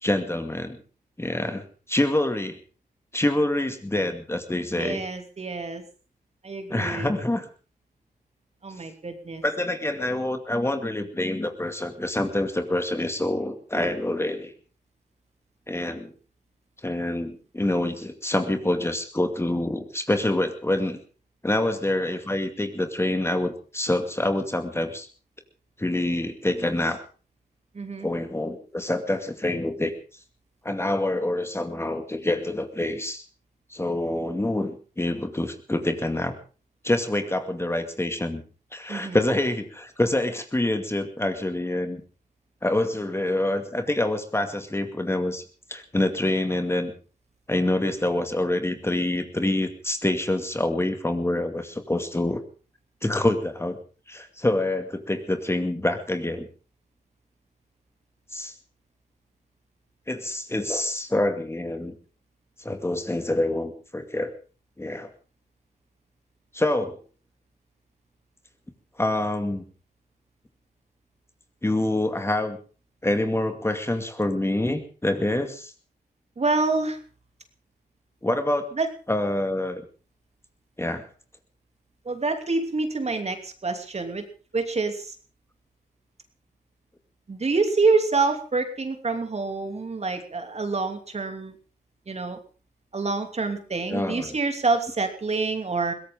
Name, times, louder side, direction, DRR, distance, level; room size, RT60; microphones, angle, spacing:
voice 1, 0.0-0.8 1.2-1.6 1.9-2.6 3.1-5.0 6.7-7.5 9.4-14.5 15.7-16.1 16.8-21.0 21.4-25.1 25.8-27.0 28.0-29.9 30.6-33.2 33.7-36.4 36.8-38.4 38.7-42.0 42.6-45.4 45.7-46.9 47.5-52.4 53.0-53.8 54.1-56.5 58.3-58.5 60.1-61.9 62.6-64.3 64.8-65.1 66.5-67.0 69.0-69.6 71.6-72.6 73.0-75.7 78.2-78.7 79.1-79.8 80.8-81.0 93.9-94.4, left 1 dB, 15° left, 6 dB, 2.4 m, -26 dB
voice 2, 4.7-5.8 6.4-7.1 8.6-9.4 27.7-28.1 38.9-39.2 76.4-77.0 78.7-78.9 82.0-84.2 84.5-85.1 87.3-91.5 92.1-92.4 92.9-95.9, right 3 dB, 40° right, 6 dB, 3.0 m, -27 dB
22.0 x 17.0 x 3.8 m, 0.38 s
cardioid pair, 75°, 16 cm